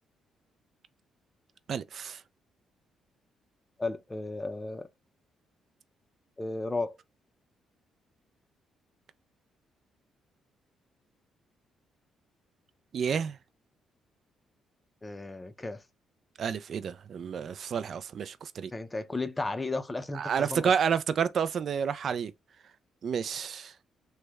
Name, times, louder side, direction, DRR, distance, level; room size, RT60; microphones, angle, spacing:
voice 1, 1.7-2.2 12.9-13.4 16.4-18.7 20.1-22.3 23.0-23.7, right 7 dB, 55° right, 0.3 m, -30 dB
voice 2, 3.8-4.9 6.4-7.0 15.0-15.8 18.7-20.7, left 3 dB, 20° left, 0.5 m, -34 dB
3.2 x 2.1 x 3.4 m
cardioid pair, 90°, 0 cm